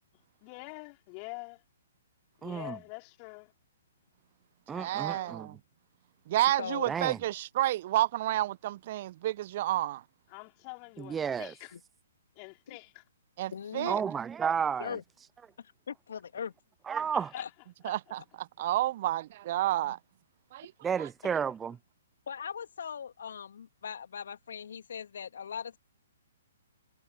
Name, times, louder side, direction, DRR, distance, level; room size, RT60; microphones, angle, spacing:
voice 1, 0.1-1.6 2.4-3.5 4.7-5.4 10.3-11.7 12.3-13.0 17.1-17.5 17.8-18.0 21.2-21.3, left 40 dB or more, 35° left, 4.7 m, -46 dB
voice 2, 2.4-2.7 4.7-5.5 6.9-7.2 11.1-11.5 13.9-15.0 16.9-17.3 20.8-21.8, right 7 dB, 15° right, 0.5 m, -31 dB
voice 3, 4.7-5.5 6.3-10.0 13.4-14.0 17.8-20.0 20.5-20.7 21.0-21.1, right 14 dB, 45° right, 1.1 m, -30 dB
voice 4, 6.6-6.9 11.7-11.8 13.5-13.9 14.8-15.0 15.6-16.5 17.3-17.5 22.3-25.8, left 7 dB, 60° left, 3.2 m, -40 dB
figure-of-eight pair, 125°, 0 cm